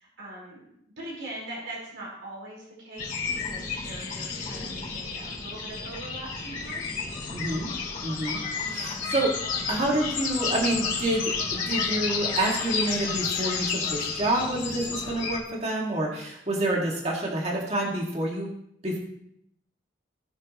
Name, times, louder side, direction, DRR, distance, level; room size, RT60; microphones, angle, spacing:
voice 1, 0.0-7.1 8.5-9.1 14.8-15.2 15.7-15.8, right 1 dB, 90° right, -6 dB, 4.9 m, -42 dB
sound 1, 3.0-15.4, left 5 dB, 45° left, 2.6 m, -31 dB
voice 2, 7.3-7.7 8.0-8.4 8.7-9.3 9.7-18.5 18.8-19.0, right 1 dB, 35° right, -2 dB, 2.3 m, -28 dB
19.0 x 6.5 x 3.2 m, 0.74 s
head